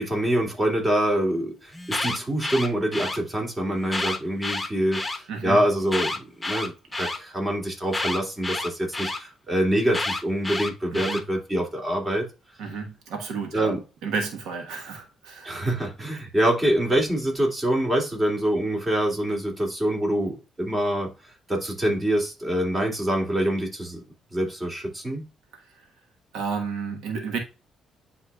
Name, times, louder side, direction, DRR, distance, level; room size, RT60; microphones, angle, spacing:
voice 1, 0.0-6.7 7.0-12.3 13.5-13.8 15.4-21.1 21.5-24.0 24.3-25.2, right 1 dB, 25° right, 2.9 m, -25 dB
Alarm, 1.7-3.2 3.8-5.2 5.8-7.2 7.9-9.2 9.9-11.2, left 2 dB, 10° left, 1.1 m, -29 dB
voice 2, 5.3-5.6 10.9-11.2 12.6-15.6 25.5-25.9 26.3-27.4, right 5 dB, 90° right, 1.3 m, -32 dB
9.6 x 4.4 x 2.4 m
cardioid pair, 90°, 0 cm